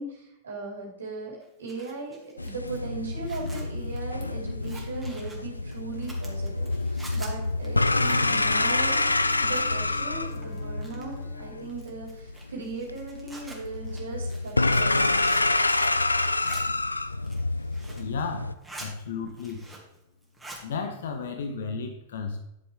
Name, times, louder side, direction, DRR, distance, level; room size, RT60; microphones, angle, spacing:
voice 1, 0.0-9.0 9.4-15.2, right 3 dB, 75° right, -1 dB, 3.0 m, -38 dB
Zipper (clothing), 1.4-10.0 10.2-11.2 11.7-16.0 16.3-16.6 17.1-18.1 18.4-18.9 19.3-20.0 20.2-20.6, right 2 dB, 5° right, 2.5 m, -47 dB
sound 1, 2.4-18.5, left 2 dB, 85° left, 0.4 m, -27 dB
Bowed string instrument, 7.7-12.9, left 4 dB, 45° left, 3.1 m, -48 dB
voice 2, 17.9-19.7 20.6-22.4, left 5 dB, 65° left, 7 dB, 0.9 m, -34 dB
11.0 x 7.1 x 3.5 m, 0.85 s
figure-of-eight pair, 95°, 0 cm